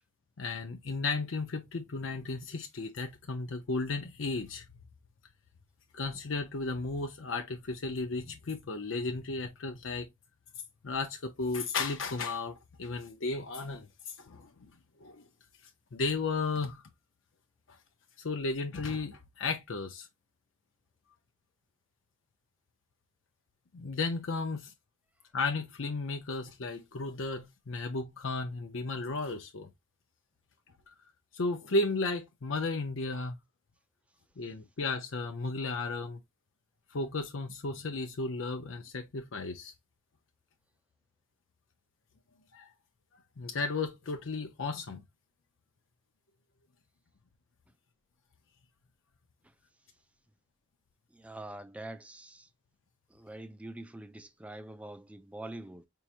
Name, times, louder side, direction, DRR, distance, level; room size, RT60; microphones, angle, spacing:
voice 1, 0.4-4.6 5.9-10.1 10.8-14.7 15.0-15.2 15.9-16.8 18.2-20.1 23.7-24.7 25.3-29.7 31.3-33.4 34.4-36.2 36.9-39.7 42.5-42.7 43.4-45.0, left 3 dB, 75° left, 0.6 m, -34 dB
voice 2, 51.1-52.5 53.1-55.9, right 1 dB, 5° right, 0.3 m, -45 dB
4.6 x 2.9 x 2.5 m
head